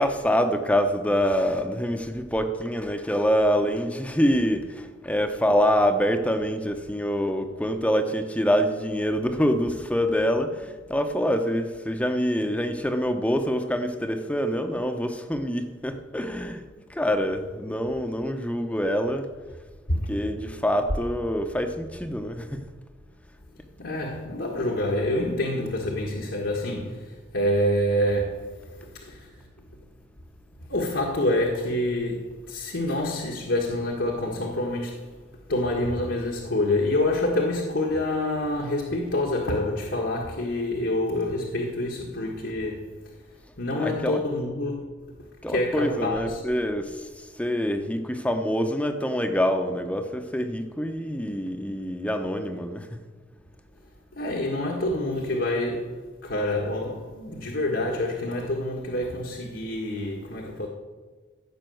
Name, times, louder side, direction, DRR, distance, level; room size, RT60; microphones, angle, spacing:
voice 1, 0.0-16.6 16.9-19.3 20.1-22.6 43.7-44.2 45.4-53.0, equal, 5° left, 0.9 m, -25 dB
voice 2, 23.8-29.4 30.7-35.1 35.5-43.0 43.6-45.1 45.5-46.4 54.1-60.7, left 1 dB, 75° left, 1.7 m, -27 dB
15.5 x 6.1 x 7.8 m
head